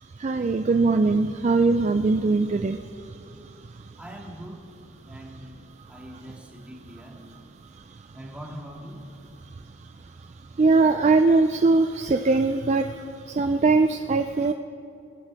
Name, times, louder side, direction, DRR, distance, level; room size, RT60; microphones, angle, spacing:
voice 1, 0.0-4.0 5.3-5.4 5.8-6.4 7.7-8.2 9.4-14.5, right 3 dB, 30° right, 7 dB, 0.3 m, -23 dB
voice 2, 4.0-4.7 5.0-7.2 8.1-9.1, equal, 5° right, -2 dB, 2.0 m, -42 dB
25.5 x 10.5 x 3.5 m, 2.7 s
head